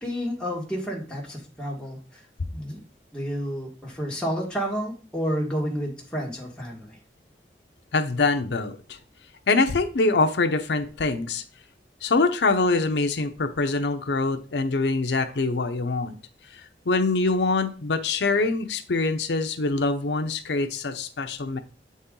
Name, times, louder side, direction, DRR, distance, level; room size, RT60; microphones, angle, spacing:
voice 1, 0.0-2.2 2.5-2.8 3.1-7.0, equal, 5° left, -3 dB, 1.5 m, -30 dB
voice 2, 7.9-9.0 9.5-11.4 12.0-16.2 16.5-21.6, left 3 dB, 85° left, 7 dB, 0.6 m, -24 dB
7.9 x 4.2 x 3.7 m, 0.37 s
head